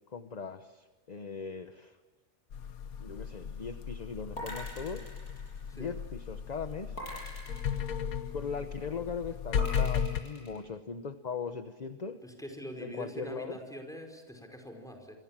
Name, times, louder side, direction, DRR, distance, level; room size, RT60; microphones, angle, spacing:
voice 1, 0.1-2.0 3.0-5.1 5.7-7.0 8.3-12.2 12.8-13.6, left 5 dB, 35° left, 9 dB, 0.8 m, -39 dB
sound 1, 2.5-10.2, left 7 dB, 70° left, 1.5 m, -35 dB
sound 2, 4.4-6.1 7.0-8.6 9.6-10.6, left 1 dB, 90° left, 8.1 m, -44 dB
voice 2, 12.2-15.2, equal, ahead, 3 dB, 4.9 m, -44 dB
27.5 x 24.0 x 7.4 m, 1.2 s
omnidirectional pair, 1.6 m